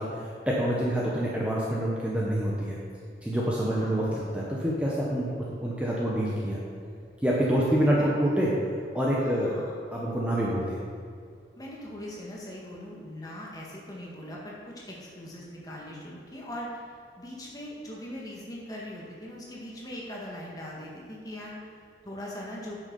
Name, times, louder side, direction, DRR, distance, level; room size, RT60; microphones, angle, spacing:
voice 1, 0.0-2.8 3.2-6.6 7.2-8.5 8.9-9.5 9.9-10.8, equal, 5° right, -6 dB, 1.0 m, -27 dB
voice 2, 7.7-8.2 9.2-9.8 11.6-16.8 17.2-21.6 22.0-22.8, left 1 dB, 20° left, -4 dB, 1.7 m, -40 dB
9.2 x 6.4 x 5.4 m, 2.3 s
head